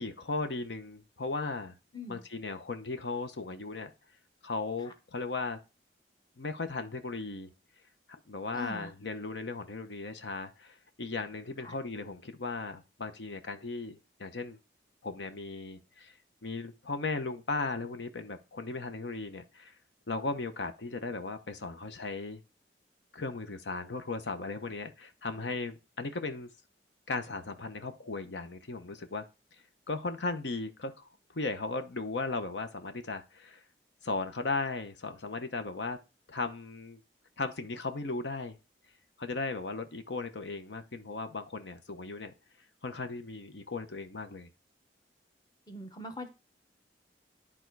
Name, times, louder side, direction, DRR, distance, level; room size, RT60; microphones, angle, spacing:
voice 1, 0.0-1.7 2.1-3.9 4.4-5.6 6.4-7.5 8.3-14.6 15.0-16.2 16.4-19.7 20.1-22.4 23.1-26.5 27.1-29.2 29.9-31.0 31.3-33.6 34.0-36.0 36.3-37.0 37.4-38.6 39.2-42.3 42.8-44.5, left 3 dB, 85° left, 0.9 m, -36 dB
voice 2, 8.5-8.9 11.6-11.7 45.7-46.3, left 2 dB, 25° left, 1.1 m, -41 dB
10.5 x 3.7 x 4.6 m
head